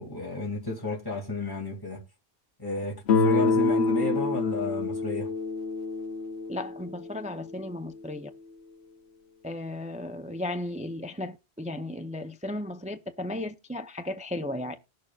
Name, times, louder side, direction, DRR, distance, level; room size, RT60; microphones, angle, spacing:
voice 1, 0.0-2.0 2.6-5.3, left 2 dB, 20° left, 2.4 m, -32 dB
Guitar, 3.1-7.9, left 4 dB, 85° left, 1.0 m, -27 dB
voice 2, 6.5-8.3 9.4-14.7, left 1 dB, 10° right, 0.3 m, -35 dB
19.0 x 6.5 x 2.4 m
omnidirectional pair, 1.1 m